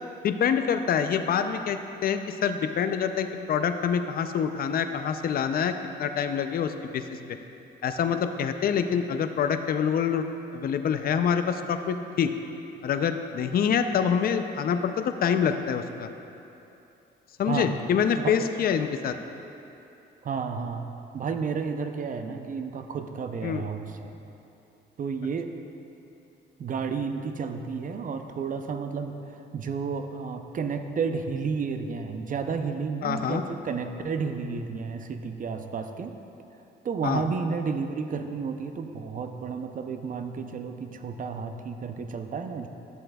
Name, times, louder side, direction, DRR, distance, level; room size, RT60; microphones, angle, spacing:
voice 1, 0.2-5.7 6.0-7.0 7.8-10.2 10.5-12.3 12.8-16.1 17.4-19.1 23.4-23.6 33.0-33.4 37.0-37.2, left 7 dB, 50° left, 8 dB, 0.5 m, -26 dB
voice 2, 17.5-17.8 18.2-18.5 20.2-20.9 21.1-24.1 25.0-25.5 26.6-36.2 36.8-42.7, right 5 dB, 45° right, 7 dB, 0.5 m, -32 dB
11.0 x 7.5 x 2.3 m, 2.8 s
cardioid pair, 90°, 20 cm